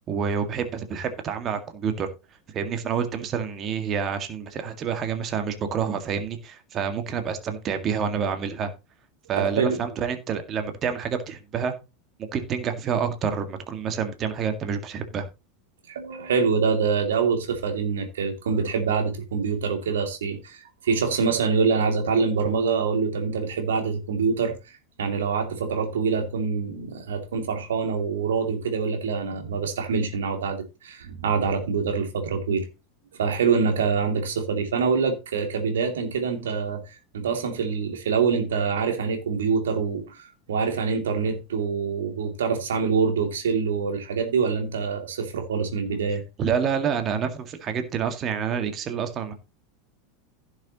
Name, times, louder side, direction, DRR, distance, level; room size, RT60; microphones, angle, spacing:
voice 1, 0.1-2.1 2.5-8.7 9.3-11.7 12.3-15.3 46.4-49.3, right 7 dB, 35° right, 1.9 m, -28 dB
voice 2, 9.4-9.8 15.9-24.5 25.0-32.7 33.1-36.8 37.1-46.2, right 5 dB, 65° right, 2.6 m, -25 dB
16.0 x 6.6 x 3.0 m
figure-of-eight pair, 85°, 0 cm